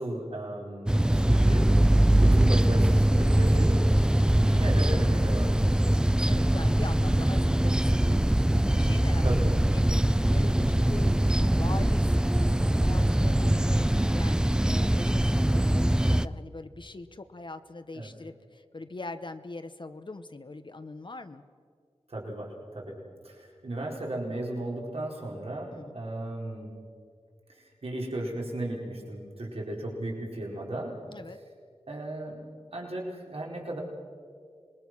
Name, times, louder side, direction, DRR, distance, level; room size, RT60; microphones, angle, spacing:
voice 1, 0.0-1.7 2.1-3.8 4.3-5.6 5.9-6.0 9.2-9.4 13.4-13.7 17.9-18.1 22.1-23.0 23.2-26.7 27.5-31.0 31.9-32.4 32.7-33.8, right 1 dB, 65° right, -1 dB, 4.4 m, -35 dB
sound 1, 0.9-16.3, right 1 dB, 5° right, 0.5 m, -22 dB
voice 2, 6.2-11.2 11.6-12.1 12.4-21.4 25.7-26.0 31.1-31.4, left 3 dB, 50° left, 9 dB, 0.9 m, -42 dB
26.5 x 21.0 x 6.1 m, 2.2 s
wide cardioid pair, 80°, 11 cm